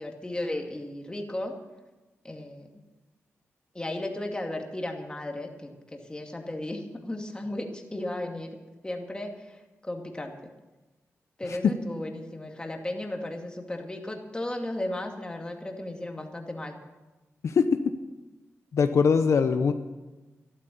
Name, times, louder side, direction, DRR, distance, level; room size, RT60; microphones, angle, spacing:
voice 1, 0.0-1.5 2.2-2.7 3.7-8.5 8.8-10.4 11.4-16.8, left 1 dB, 15° left, 2 dB, 2.3 m, -35 dB
voice 2, 17.4-17.8 18.7-19.7, left 5 dB, 75° left, 8 dB, 0.9 m, -21 dB
12.5 x 12.5 x 7.1 m, 1.1 s
cardioid pair, 85°, 5 cm